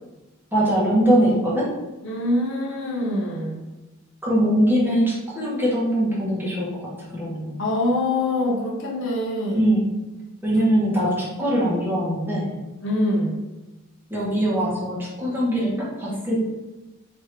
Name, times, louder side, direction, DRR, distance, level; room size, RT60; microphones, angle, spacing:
voice 1, 0.5-1.7 4.2-7.6 9.5-9.9 10.4-12.5 14.1-16.5, equal, 10° right, -7 dB, 1.4 m, -22 dB
voice 2, 2.0-3.6 7.6-9.7 12.8-13.4, left 1 dB, 60° left, -4 dB, 1.0 m, -24 dB
3.7 x 3.1 x 4.5 m, 1.1 s
head